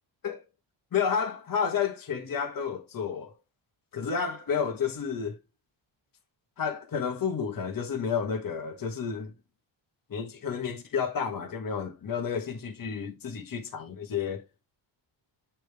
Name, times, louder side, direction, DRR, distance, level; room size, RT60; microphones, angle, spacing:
voice 1, 0.9-3.3 3.9-5.4 6.6-9.3 10.1-14.4, left 6 dB, 45° left, 1.4 m, -31 dB
8.8 x 3.4 x 3.5 m
wide cardioid pair, 140°, 47 cm